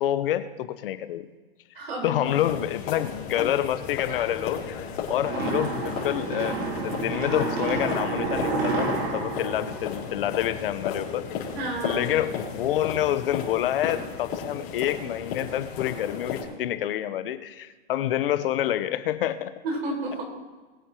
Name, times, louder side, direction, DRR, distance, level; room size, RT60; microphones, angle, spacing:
voice 1, 0.0-1.3 2.0-11.2 11.8-19.6, left 12 dB, 55° left, 12 dB, 0.9 m, -28 dB
voice 2, 1.7-2.2 3.3-3.5 11.5-12.0 19.6-20.2, right 1 dB, 65° right, -1 dB, 4.5 m, -31 dB
sound 1, 2.2-16.4, left 7 dB, 35° left, 4.3 m, -35 dB
sound 2, 5.2-10.6, right 3 dB, 40° right, 3.4 m, -29 dB
21.5 x 8.6 x 3.0 m, 1.3 s
hypercardioid pair, 140°, 33 cm